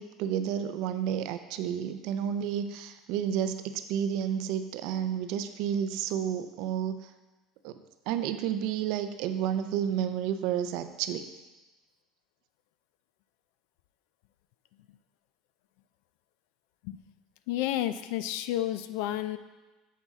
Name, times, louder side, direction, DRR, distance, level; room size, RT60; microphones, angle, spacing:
voice 1, 0.0-7.1 7.6-11.3, right 9 dB, 70° right, 9 dB, 0.4 m, -31 dB
voice 2, 17.5-19.4, left 13 dB, 80° left, 12 dB, 0.3 m, -31 dB
7.2 x 4.2 x 3.5 m, 1.2 s
supercardioid pair, 120°, 0 cm